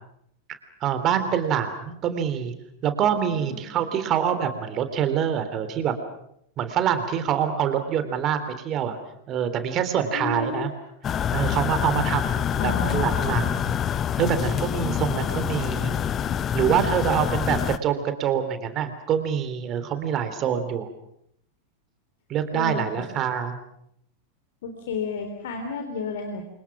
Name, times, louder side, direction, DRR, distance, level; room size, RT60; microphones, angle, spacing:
voice 1, 0.8-2.5 2.8-5.9 6.6-9.0 9.3-10.7 11.3-13.5 14.2-15.9 16.5-20.9 22.3-23.5, right 8 dB, 35° right, 9 dB, 3.4 m, -25 dB
voice 2, 3.3-3.8 10.1-10.7 12.6-13.5 22.5-23.0 24.6-26.4, left 4 dB, 55° left, 5 dB, 3.4 m, -31 dB
sound 1, 11.0-17.8, left 8 dB, 25° left, 1.0 m, -26 dB
29.5 x 25.0 x 6.2 m, 0.74 s
figure-of-eight pair, 90°, 0 cm